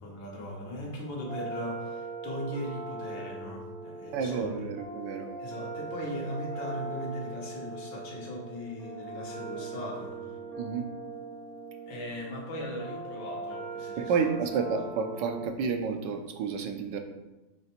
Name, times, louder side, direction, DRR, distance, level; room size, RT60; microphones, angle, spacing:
voice 1, 0.0-4.7 5.4-10.3 11.9-14.3, equal, 85° left, -1 dB, 1.9 m, -39 dB
sound 1, 1.2-15.5, right 3 dB, 40° left, 2.6 m, -40 dB
voice 2, 4.1-5.3 10.6-10.8 14.0-17.0, right 6 dB, 80° right, 5 dB, 1.4 m, -30 dB
6.7 x 3.3 x 4.3 m, 1.0 s
omnidirectional pair, 1.9 m